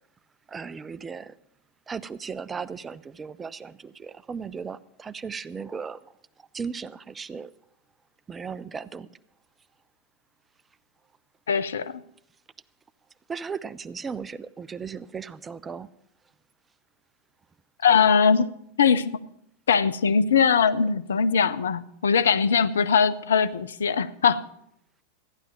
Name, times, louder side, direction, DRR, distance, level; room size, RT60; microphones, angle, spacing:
voice 1, 0.5-1.3 1.9-6.0 6.4-7.5 8.3-9.1 13.3-15.9, right 5 dB, 15° right, 18 dB, 0.4 m, -36 dB
voice 2, 11.5-12.0 17.8-18.5 18.8-19.2 19.7-24.5, left 6 dB, 65° left, 13 dB, 0.6 m, -21 dB
14.5 x 10.5 x 6.0 m, 0.76 s
figure-of-eight pair, 90°, 0 cm